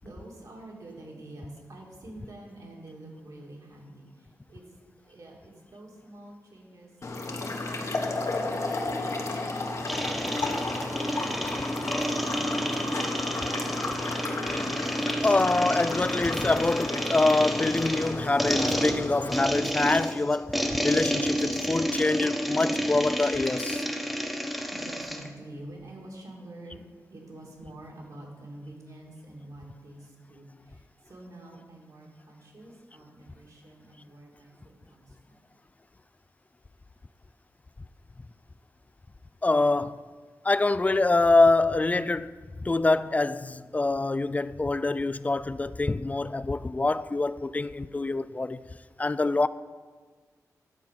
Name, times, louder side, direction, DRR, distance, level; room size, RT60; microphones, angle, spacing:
voice 1, 0.0-4.6 5.0-6.9 7.2-8.5 24.3-26.8 27.1-35.4, right 1 dB, 65° right, 2.5 m, -47 dB
sound 1, 7.0-19.4, left 2 dB, 50° left, 1.3 m, -33 dB
sound 2, 9.9-25.3, equal, ahead, 1.1 m, -30 dB
voice 2, 15.2-23.8 39.4-40.0 40.4-42.3 42.6-48.6 49.0-49.5, left 2 dB, 20° left, 0.3 m, -25 dB
11.0 x 4.4 x 7.6 m
cardioid pair, 75°, 6 cm